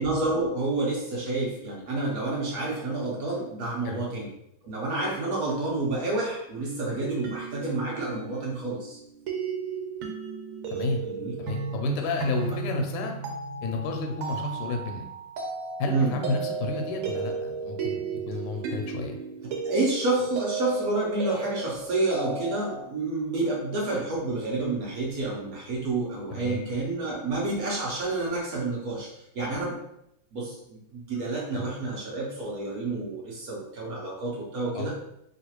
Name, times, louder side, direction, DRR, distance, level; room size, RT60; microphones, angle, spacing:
voice 1, 0.0-4.3 4.6-9.0 11.0-11.4 15.9-16.1 19.6-29.1 29.3-29.8 30.3-35.0, right 2 dB, 65° right, -4 dB, 0.9 m, -29 dB
sound 1, 7.0-22.8, right 4 dB, 85° right, 1.5 m, -34 dB
voice 2, 10.7-11.0 11.4-13.1 13.6-15.1 15.8-19.2 26.3-26.6 31.5-31.7 34.7-35.0, left 3 dB, 85° left, 3 dB, 1.5 m, -31 dB
3.0 x 3.0 x 2.9 m, 0.78 s
omnidirectional pair, 2.4 m